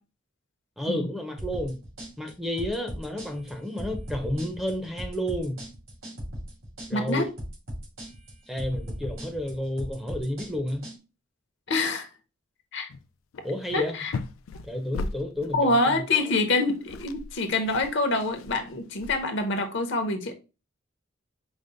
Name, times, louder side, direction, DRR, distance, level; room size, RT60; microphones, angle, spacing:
voice 1, 0.8-1.8 2.2-5.6 6.9-7.3 8.5-10.8 13.4-14.0 14.6-16.4, left 1 dB, ahead, 0.5 m, -31 dB
sound 1, 1.4-11.0, equal, 80° right, 2.2 m, -38 dB
voice 2, 6.9-7.3 11.7-12.1 12.7-12.9 13.7-14.1 15.5-20.3, left 2 dB, 60° left, 0.8 m, -26 dB
sound 2, 12.9-13.1 13.3-15.7 16.5-16.6 16.7-19.5, left 3 dB, 85° left, 0.4 m, -38 dB
5.1 x 2.1 x 3.7 m
head